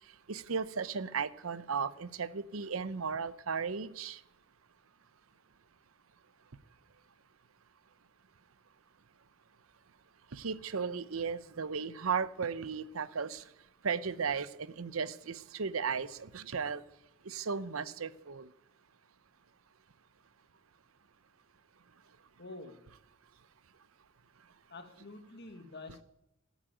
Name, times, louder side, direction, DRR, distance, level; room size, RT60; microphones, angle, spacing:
voice 1, 0.3-4.2 10.3-13.4 13.8-16.8 17.3-18.5, right 5 dB, 85° right, 16 dB, 0.8 m, -35 dB
voice 2, 22.4-22.9 24.7-26.0, left 2 dB, 55° left, 8 dB, 1.7 m, -48 dB
16.5 x 8.2 x 9.0 m, 0.85 s
head